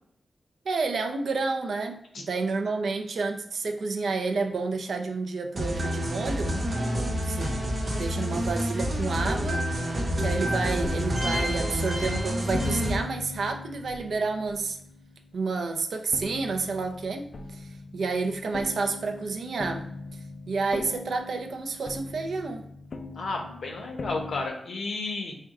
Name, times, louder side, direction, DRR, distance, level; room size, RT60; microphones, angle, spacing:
voice 1, 0.7-6.6 7.2-7.6 7.9-9.6 10.2-14.8 15.3-19.9 20.5-22.7, right 4 dB, 65° right, 4 dB, 0.5 m, -30 dB
sound 1, 5.6-12.9, equal, 30° right, 0.8 m, -28 dB
sound 2, 10.0-15.7 16.1-24.5, left 3 dB, 50° left, 0.3 m, -40 dB
voice 2, 23.1-25.3, left 3 dB, 65° left, 2 dB, 0.8 m, -32 dB
4.6 x 2.2 x 3.5 m, 0.69 s
wide cardioid pair, 160°, 0 cm